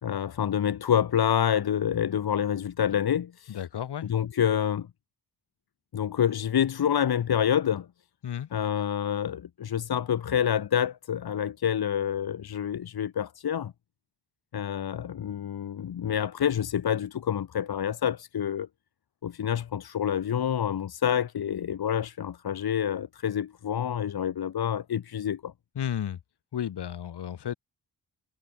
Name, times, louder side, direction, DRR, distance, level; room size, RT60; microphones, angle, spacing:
voice 1, 0.0-3.6 4.1-4.9 5.9-7.9 8.5-13.7 14.5-18.7 19.2-25.5, left 9 dB, 70° left, 1.7 m, -27 dB
voice 2, 3.5-4.1 8.2-8.5 25.7-26.2 26.5-27.5, left 9 dB, 90° left, 6.5 m, -33 dB
cardioid pair, 90°, 39 cm